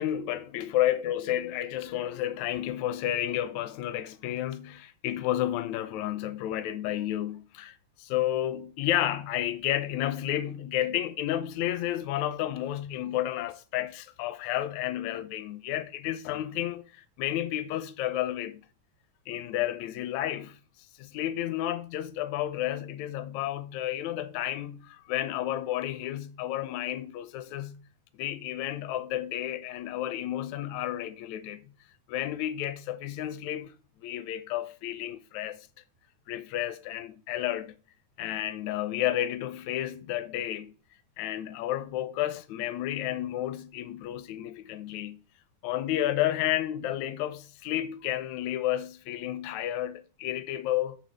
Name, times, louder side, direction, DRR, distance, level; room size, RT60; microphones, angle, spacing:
voice 1, 0.0-18.6 19.3-20.6 21.0-27.8 28.1-31.7 32.1-35.7 36.3-37.7 38.2-40.7 41.2-45.2 45.6-51.0, left 12 dB, 75° left, 1.9 m, -31 dB
10.0 x 3.5 x 6.4 m
omnidirectional pair, 3.5 m